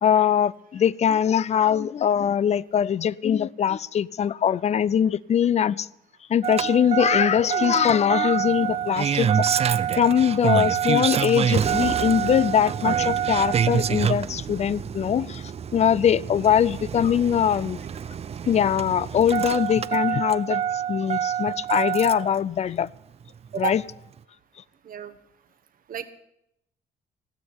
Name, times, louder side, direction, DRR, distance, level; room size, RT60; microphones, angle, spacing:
voice 1, 0.0-5.9 6.3-9.5 10.0-15.4 15.7-17.8 18.5-22.9 23.6-23.8, left 9 dB, 40° left, 0.4 m, -22 dB
Engine starting, 6.4-22.4 23.6-23.7, right 8 dB, 40° right, 0.5 m, -26 dB
voice 2, 23.5-23.8 24.8-25.1 25.9-26.1, right 7 dB, 55° right, 1.1 m, -31 dB
16.0 x 6.3 x 9.6 m
cardioid pair, 85°, 17 cm